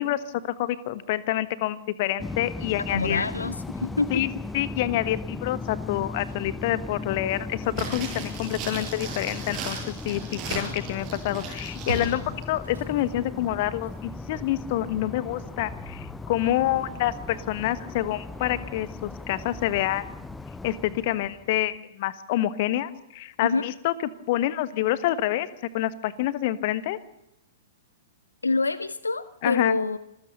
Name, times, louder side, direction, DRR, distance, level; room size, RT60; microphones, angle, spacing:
voice 1, 0.0-3.2 4.1-4.3 4.5-20.3 20.6-23.9 24.3-25.5 25.7-27.0 29.4-29.7, left 14 dB, 45° left, 16 dB, 1.3 m, -27 dB
sound 1, 2.2-21.7, left 3 dB, 5° left, 0.6 m, -37 dB
voice 2, 2.9-4.2 23.4-23.6 28.4-30.0, left 3 dB, 75° left, 16 dB, 0.8 m, -26 dB
Engine starting / Slam, 5.6-7.0 7.3-20.3, right 3 dB, 75° right, 7.6 m, -46 dB
sound 2, 7.7-12.2 12.4-12.5, right 5 dB, 30° right, 7.4 m, -37 dB
26.0 x 15.0 x 6.9 m, 0.88 s
figure-of-eight pair, 105°, 0 cm